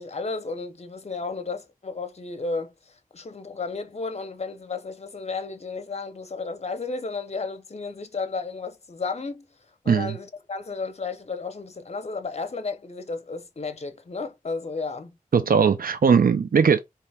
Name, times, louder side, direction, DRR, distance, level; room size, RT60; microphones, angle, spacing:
voice 1, 0.0-9.4 9.8-15.2, left 4 dB, 50° left, 0.7 m, -33 dB
voice 2, 9.9-10.2 15.3-16.8, right 6 dB, 85° right, 0.6 m, -19 dB
4.3 x 2.9 x 3.4 m
wide cardioid pair, 70°, 15 cm